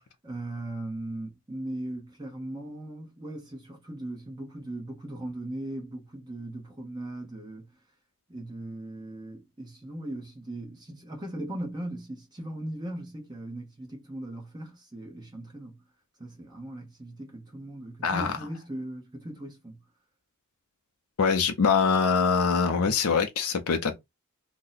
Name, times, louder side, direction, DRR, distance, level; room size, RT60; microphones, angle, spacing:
voice 1, 0.2-7.7 8.3-15.8 16.2-19.8, right 1 dB, 20° right, 0.7 m, -38 dB
voice 2, 21.2-24.0, left 5 dB, 75° left, 0.5 m, -23 dB
2.7 x 2.0 x 3.9 m
head